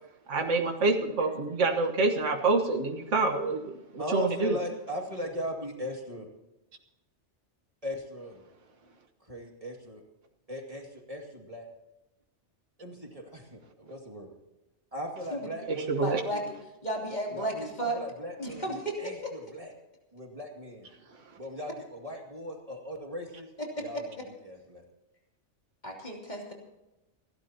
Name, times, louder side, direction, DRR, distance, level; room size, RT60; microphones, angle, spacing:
voice 1, 0.3-4.6 15.9-16.2, right 3 dB, 80° right, 3 dB, 1.7 m, -27 dB
voice 2, 4.0-6.3 7.8-8.4 9.2-10.0 10.5-11.7 12.8-14.3 14.9-16.4 17.3-19.7 20.1-20.9 21.4-23.5 23.8-24.2 24.4-24.8, equal, 30° right, 1 dB, 2.4 m, -39 dB
voice 3, 16.0-16.5 16.8-18.0 18.4-19.0 23.6-24.3 25.8-26.5, right 1 dB, 35° left, 0 dB, 3.2 m, -34 dB
28.5 x 12.5 x 2.9 m, 0.98 s
omnidirectional pair, 1.2 m